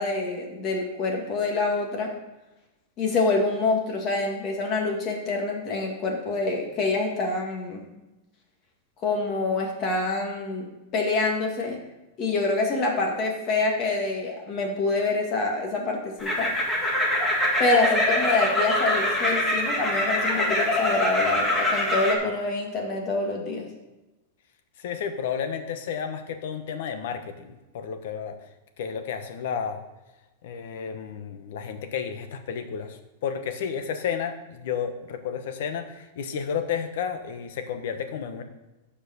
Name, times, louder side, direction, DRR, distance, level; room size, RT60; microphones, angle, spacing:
voice 1, 0.0-2.1 3.0-7.9 9.0-10.7 10.9-11.8 12.2-16.5 17.6-23.7, left 3 dB, 35° left, 1 dB, 2.2 m, -26 dB
sound 1, 16.2-22.1, left 1 dB, 10° left, 1.8 m, -24 dB
voice 2, 24.8-28.4 28.8-29.8 30.4-38.4, left 7 dB, 70° left, 8 dB, 1.1 m, -32 dB
8.7 x 5.1 x 6.8 m, 1.0 s
supercardioid pair, 140°, 0 cm